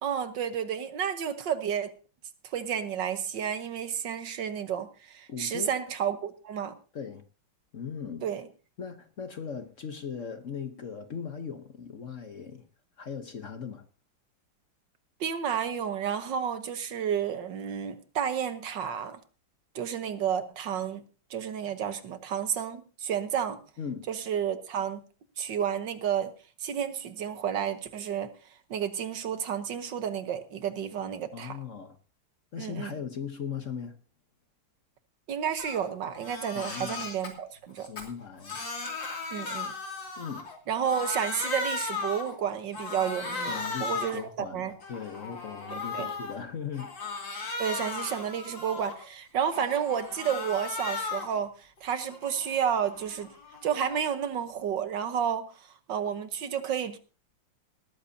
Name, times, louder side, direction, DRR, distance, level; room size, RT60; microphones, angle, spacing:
voice 1, 0.0-1.9 2.4-6.7 8.2-8.5 15.2-19.2 19.7-23.6 24.1-25.0 25.4-26.3 26.6-28.3 28.7-31.6 32.6-32.9 35.3-37.9 39.3-39.7 40.7-44.7 45.7-46.1 47.6-53.3 53.6-57.0, right 8 dB, 70° right, 1.8 m, -31 dB
voice 2, 5.3-5.7 6.9-7.2 7.7-8.3 8.8-12.7 13.0-13.8 23.8-24.1 31.3-32.0 32.5-34.0 36.5-37.1 37.9-38.6 40.2-40.5 43.5-46.9, left 7 dB, 45° left, 1.2 m, -38 dB
Crying sobbing, 35.6-35.8 36.1-37.3 37.8-40.6 40.8-42.4 42.7-44.3 44.7-46.3 46.7-49.1 49.5-51.4 51.8-54.2, left 4 dB, 75° left, 3.5 m, -36 dB
19.0 x 13.5 x 2.8 m
omnidirectional pair, 2.1 m